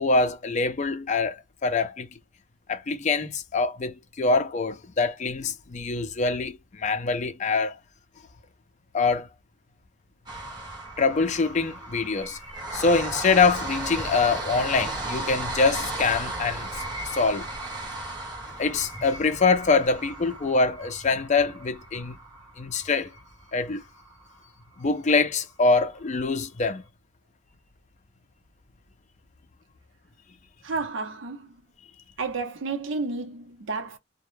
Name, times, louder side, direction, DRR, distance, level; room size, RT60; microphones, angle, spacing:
voice 1, 0.0-2.1 2.7-7.8 8.9-9.3 11.0-12.4 12.7-16.7 17.0-17.5 18.6-22.2 22.6-23.1 23.5-23.8 24.8-26.8, left 4 dB, 40° left, 0.5 m, -24 dB
sound 1, 10.3-24.4 24.8-24.9 25.2-25.3, right 2 dB, 20° right, 0.9 m, -35 dB
voice 2, 30.6-31.6 32.2-34.0, right 4 dB, 80° right, 0.7 m, -31 dB
2.1 x 2.0 x 3.0 m
head